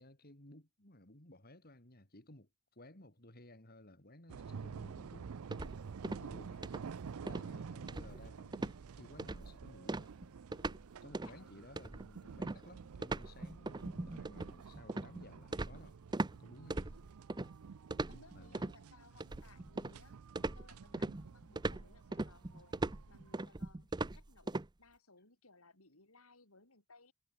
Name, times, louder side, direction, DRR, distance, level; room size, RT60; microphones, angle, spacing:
voice 1, 0.0-5.3 6.2-6.6 7.2-10.1 11.0-16.0 16.3-16.9 18.3-18.6, left 1 dB, 45° left, 4.5 m, -57 dB
sound 1, 4.3-23.4, right 6 dB, 85° right, 0.5 m, -50 dB
sound 2, 5.5-6.3 6.6-6.9 7.3-7.5 7.9-8.3 8.5-8.8 9.2-9.5 9.9-10.8 11.1-11.4 11.8-16.4 16.7-17.5 17.9-18.8 19.2-20.0 20.4-24.7, right 2 dB, 20° right, 0.6 m, -40 dB
voice 2, 6.1-6.4 7.2-7.6 11.2-11.6 16.5-17.0 18.1-20.1 20.5-22.8 23.1-27.1, left 3 dB, 85° left, 6.5 m, -63 dB
head